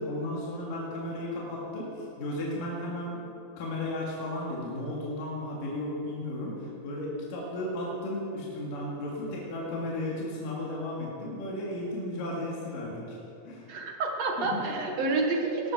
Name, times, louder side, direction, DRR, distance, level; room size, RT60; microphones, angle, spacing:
voice 1, 0.0-3.3 3.6-13.2 13.4-13.7 14.4-14.8, left 1 dB, 70° left, -4 dB, 3.8 m, -34 dB
voice 2, 13.7-15.7, right 3 dB, 55° right, 1 dB, 2.4 m, -29 dB
20.0 x 12.0 x 4.9 m, 3.0 s
omnidirectional pair, 4.2 m